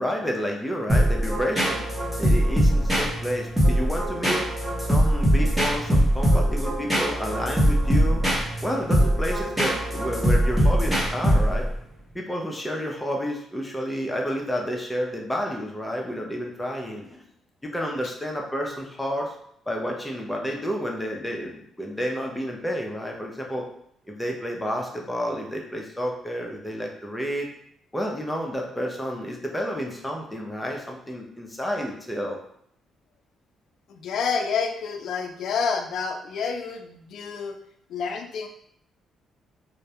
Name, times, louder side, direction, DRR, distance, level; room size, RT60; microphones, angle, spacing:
voice 1, 0.0-1.8 2.2-4.4 4.9-8.3 8.6-11.7 12.1-17.2 17.6-19.3 19.7-23.7 24.1-27.5 27.9-32.4, equal, 10° left, 0 dB, 0.5 m, -30 dB
sound 1, 0.9-11.8, equal, 10° right, 0.9 m, -22 dB
voice 2, 33.9-37.6 37.9-38.5, left 5 dB, 70° left, 5 dB, 0.3 m, -28 dB
2.2 x 2.0 x 2.7 m, 0.71 s
cardioid pair, 90°, 0 cm